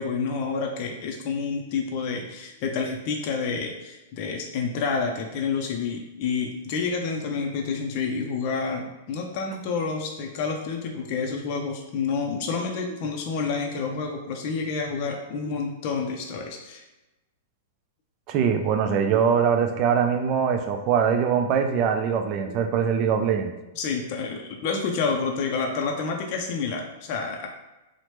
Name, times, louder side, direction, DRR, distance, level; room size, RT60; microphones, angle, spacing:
voice 1, 0.0-16.8 22.5-22.6 23.7-27.5, left 5 dB, 45° left, 2 dB, 0.4 m, -29 dB
voice 2, 18.3-23.5, right 7 dB, 40° right, 6 dB, 0.3 m, -22 dB
2.9 x 2.0 x 3.2 m, 1.0 s
hypercardioid pair, 140°, 0 cm